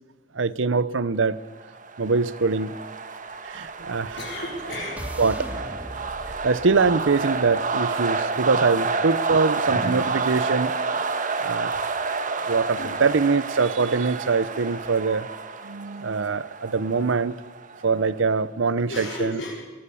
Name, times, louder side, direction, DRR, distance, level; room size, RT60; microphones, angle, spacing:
voice 1, 0.3-1.4 2.0-2.7 3.4-4.2 5.2-5.5 6.4-10.7 11.4-11.8 12.5-15.3 15.6-17.4 17.8-19.4, right 4 dB, 70° right, 0.7 m, -23 dB
sound 1, 1.6-18.2, right 4 dB, 45° right, 1.4 m, -29 dB
sound 2, 3.8-8.0, equal, 10° right, 2.4 m, -40 dB
voice 2, 4.2-5.0 8.5-8.7 9.6-10.1 12.8-13.0 14.5-14.7 18.9-19.5, left 1 dB, 65° left, 4.7 m, -34 dB
22.0 x 17.0 x 7.0 m
head